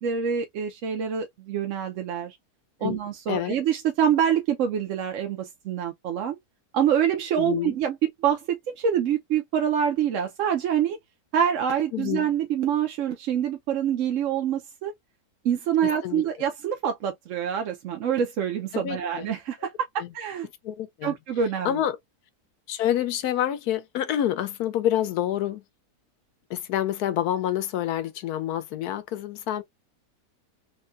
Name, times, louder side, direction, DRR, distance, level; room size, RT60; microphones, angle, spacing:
voice 1, 0.0-2.4 2.8-6.4 6.7-11.0 11.3-14.9 15.4-20.5 21.0-21.8, right 8 dB, 65° right, 0.9 m, -26 dB
voice 2, 7.4-7.7 11.9-12.3 16.0-16.2 18.7-19.2 20.0-20.1 20.6-21.1 21.6-22.0 22.7-25.6 26.5-29.6, left 11 dB, 80° left, 1.2 m, -27 dB
3.5 x 2.2 x 2.6 m
omnidirectional pair, 1.6 m